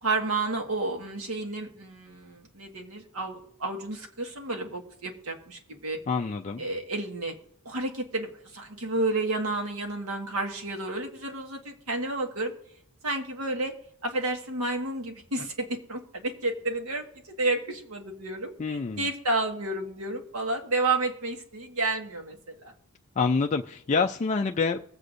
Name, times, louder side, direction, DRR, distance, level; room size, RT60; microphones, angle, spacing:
voice 1, 0.0-6.0 6.6-7.3 7.7-12.5 13.0-13.7 14.0-22.7, right 2 dB, 85° right, 3 dB, 1.7 m, -31 dB
voice 2, 6.1-6.6 18.6-19.1 23.2-24.8, left 4 dB, 30° left, 3 dB, 0.3 m, -26 dB
23.0 x 8.0 x 2.6 m, 0.70 s
head